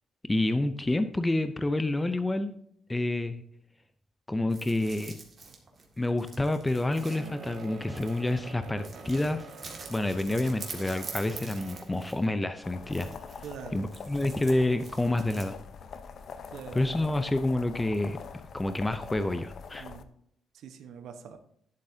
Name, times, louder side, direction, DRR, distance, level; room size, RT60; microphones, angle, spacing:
voice 1, 0.3-2.5 2.9-3.4 4.3-5.2 6.0-9.5 9.9-13.1 13.7-15.6 16.7-18.2 18.5-19.9, left 2 dB, 10° left, 9 dB, 0.5 m, -28 dB
sound 1, 4.5-8.4 8.8-12.3 12.8-15.5, right 4 dB, 35° right, 1.9 m, -46 dB
sound 2, 5.5-5.8 6.9-12.2, right 4 dB, 60° right, 1.5 m, -46 dB
sound 3, 12.6-20.0, left 6 dB, 50° left, 0.7 m, -44 dB
voice 2, 13.4-13.8 16.5-16.9 19.8-20.1 20.5-21.4, right 7 dB, 75° right, 7 dB, 1.0 m, -43 dB
11.0 x 7.5 x 2.7 m, 0.68 s
cardioid pair, 135°, 0 cm